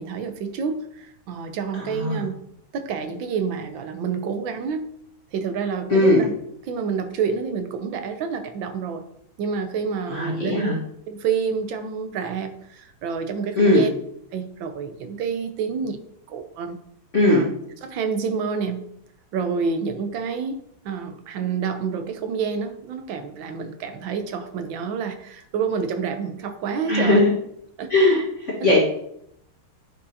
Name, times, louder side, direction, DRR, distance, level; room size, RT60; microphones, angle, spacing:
voice 1, 0.0-2.4 2.7-4.9 5.3-6.3 6.7-9.0 9.4-10.7 11.1-13.9 14.3-16.0 16.3-16.8 17.3-17.5 17.8-18.8 19.3-27.2 27.8-27.9 28.6-28.7, right 6 dB, 70° right, 8 dB, 1.4 m, -28 dB
voice 2, 1.8-2.2 5.9-6.3 10.1-10.8 13.5-13.8 17.1-17.4 26.9-27.3 27.9-28.8, left 1 dB, 35° left, -6 dB, 1.6 m, -19 dB
9.3 x 5.3 x 2.8 m, 0.73 s
omnidirectional pair, 2.4 m